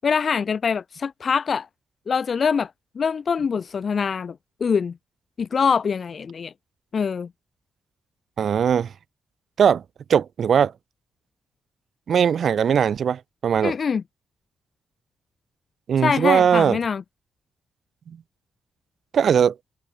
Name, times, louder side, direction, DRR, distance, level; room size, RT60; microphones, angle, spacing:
voice 1, 0.0-1.7 2.1-2.7 2.9-4.3 4.6-4.9 5.4-6.5 6.9-7.3 13.6-14.0 16.0-17.0, left 6 dB, 45° left, 6.7 m, -23 dB
voice 2, 8.4-8.9 9.6-9.8 10.1-10.7 12.1-13.7 15.9-16.8 19.1-19.5, right 7 dB, 55° right, 7.6 m, -19 dB
cardioid pair, 120°, 0 cm